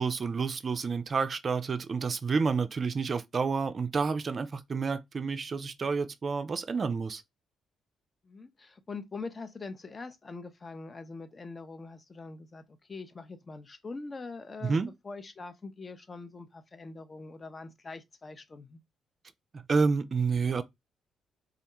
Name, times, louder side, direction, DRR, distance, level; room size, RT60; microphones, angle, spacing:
voice 1, 0.0-7.2 14.6-14.9 19.5-20.6, right 5 dB, 45° right, 0.3 m, -29 dB
voice 2, 8.2-18.8, left 3 dB, 35° left, 0.5 m, -43 dB
2.4 x 2.2 x 2.9 m
hypercardioid pair, 50°, 0 cm